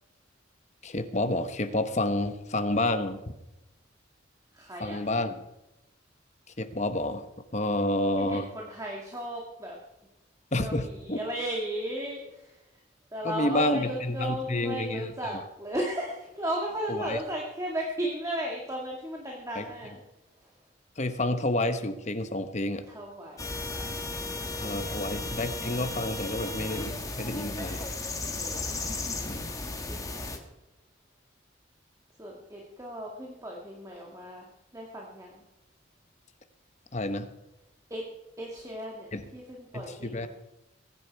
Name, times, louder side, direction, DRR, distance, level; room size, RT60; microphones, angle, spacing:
voice 1, 0.8-3.2 4.8-5.4 6.6-7.3 7.5-8.5 10.5-11.2 13.2-15.4 16.9-17.2 19.5-19.7 21.0-22.8 24.6-27.8 29.2-29.4 36.9-37.3 39.1-39.3 39.7-40.3, left 1 dB, 35° left, 9 dB, 1.1 m, -29 dB
voice 2, 4.5-5.0 8.2-9.8 10.6-12.6 13.1-20.0 22.9-23.6 23.9-25.2 28.4-28.7 29.3-29.5 29.9-30.3 32.2-34.5 34.7-35.4 37.9-38.0 38.4-40.3, right 1 dB, 15° right, -2 dB, 2.0 m, -36 dB
sound 1, 23.4-30.4, left 2 dB, 15° left, 1.6 m, -35 dB
22.0 x 10.5 x 4.7 m, 0.94 s
head